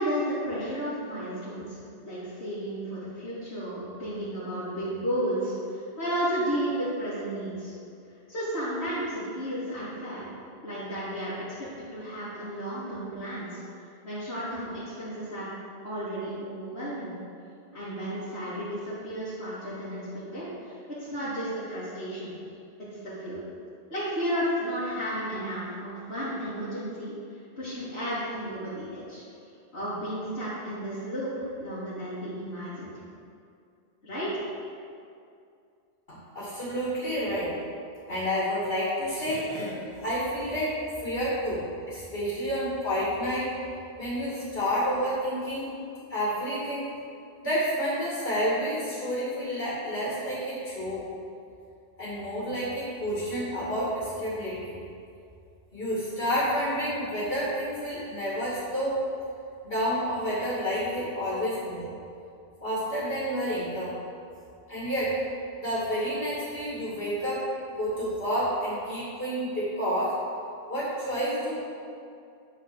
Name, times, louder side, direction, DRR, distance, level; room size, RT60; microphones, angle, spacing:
voice 1, 0.0-1.8 2.0-7.7 8.3-10.3 10.6-11.4 11.8-15.5 15.8-17.1 17.7-20.8 21.1-22.3 23.0-23.4 23.9-27.1 27.6-29.2 29.7-32.9 34.0-34.4, equal, 85° left, -13 dB, 2.9 m, -33 dB
voice 2, 36.1-37.5 38.1-40.7 41.0-43.5 44.0-45.7 46.1-46.9 47.4-51.0 52.0-54.8 55.7-58.9 59.6-61.8 62.6-63.9 64.7-65.2 65.6-67.4 67.8-70.1 70.7-71.6, equal, 65° left, -8 dB, 2.8 m, -29 dB
9.9 x 4.9 x 6.4 m, 2.5 s
omnidirectional pair, 1.1 m